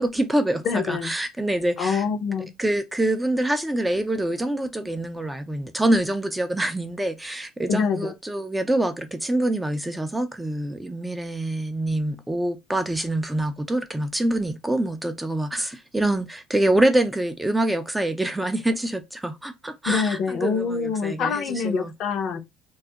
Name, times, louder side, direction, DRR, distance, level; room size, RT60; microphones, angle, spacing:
voice 1, 0.0-2.0 2.6-21.9, right 1 dB, 10° right, 0.3 m, -25 dB
voice 2, 0.6-1.1 1.8-2.5 7.7-8.1 19.9-22.4, left 6 dB, 60° left, 0.5 m, -25 dB
2.3 x 2.0 x 2.6 m
supercardioid pair, 95°, 0 cm